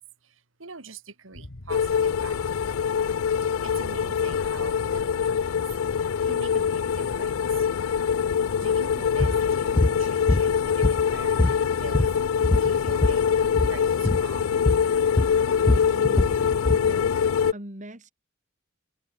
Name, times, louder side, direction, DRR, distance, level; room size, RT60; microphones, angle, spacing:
voice 1, 0.0-2.6 3.6-5.5 6.2-7.7 8.6-12.1 12.6-13.3 13.7-14.6, right 4 dB, 75° right, 2.3 m, -43 dB
sound 1, 1.3-14.5, left 1 dB, 65° left, 1.8 m, -42 dB
sound 2, 1.7-17.5, left 7 dB, 85° left, 0.4 m, -24 dB
sound 3, 9.2-9.4 9.8-10.0 10.3-11.1 11.4-13.2 13.5-13.8 14.0-14.2 14.7-14.9 15.2-16.9, left 2 dB, 25° left, 0.5 m, -23 dB
voice 2, 15.6-16.5 16.8-18.1, right 1 dB, 35° right, 3.7 m, -41 dB
head